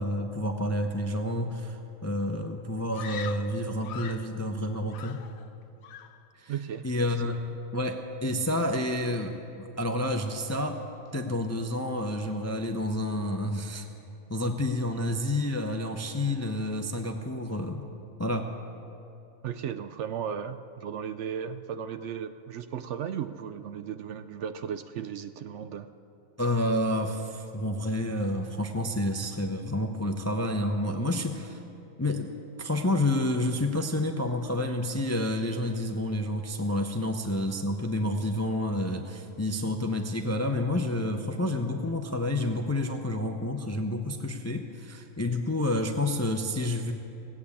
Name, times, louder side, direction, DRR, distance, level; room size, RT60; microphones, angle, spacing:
voice 1, 0.0-5.2 6.4-6.5 6.8-7.3 7.7-10.8 11.1-13.9 14.3-17.8 18.2-18.5 26.4-31.6 32.0-32.3 32.6-46.9, left 1 dB, 20° left, 5 dB, 0.4 m, -29 dB
Screaming, 2.9-4.4 4.9-5.6 5.8-6.3, left 8 dB, 80° left, 1.1 m, -42 dB
voice 2, 6.5-6.9 19.4-25.9, right 8 dB, 65° right, 10 dB, 0.8 m, -35 dB
17.5 x 8.5 x 8.5 m, 2.8 s
omnidirectional pair, 1.4 m